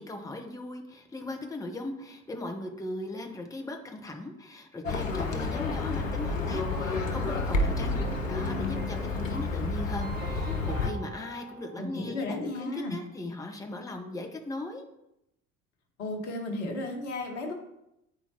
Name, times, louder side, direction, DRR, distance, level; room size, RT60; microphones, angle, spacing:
voice 1, 0.0-8.0 8.3-14.8, left 2 dB, 10° left, 3 dB, 0.9 m, -38 dB
Livestock farm animals working animals, 4.8-10.9, left 3 dB, 85° left, 0.6 m, -30 dB
Keyboard (musical), 7.6-12.5, right 5 dB, 25° right, 0.7 m, -44 dB
voice 2, 11.8-13.0 16.0-17.5, left 2 dB, 65° left, 3 dB, 1.2 m, -34 dB
8.8 x 4.3 x 2.9 m, 0.85 s
figure-of-eight pair, 60°, 38 cm